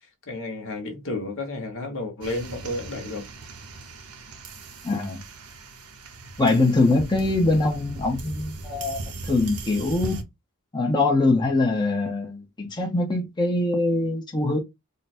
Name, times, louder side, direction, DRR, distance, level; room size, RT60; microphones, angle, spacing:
voice 1, 0.3-3.2, left 2 dB, 60° left, 1.2 m, -32 dB
sound 1, 2.2-10.2, right 2 dB, 80° right, 0.9 m, -38 dB
voice 2, 4.8-5.2 6.4-9.0 9.3-10.2 10.7-14.6, left 2 dB, 20° left, 0.8 m, -23 dB
3.8 x 2.2 x 4.2 m
head